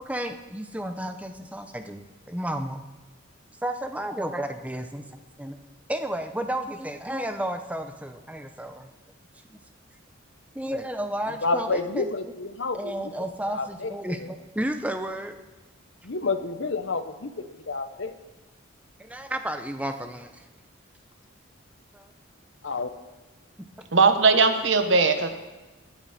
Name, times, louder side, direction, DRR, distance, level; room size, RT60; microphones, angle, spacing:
voice 1, 0.1-2.8 3.6-5.1 5.4-5.6 5.9-8.9 9.5-9.6 10.5-12.1 12.7-15.4 19.0-20.5 21.9-22.1, right 1 dB, 5° right, 7 dB, 0.7 m, -32 dB
voice 2, 11.4-13.1 13.5-14.3 16.0-18.1 22.6-22.9, left 3 dB, 65° left, 10 dB, 0.9 m, -30 dB
voice 3, 23.9-25.3, right 4 dB, 65° right, 8 dB, 1.2 m, -19 dB
20.5 x 9.3 x 4.3 m, 1.2 s
head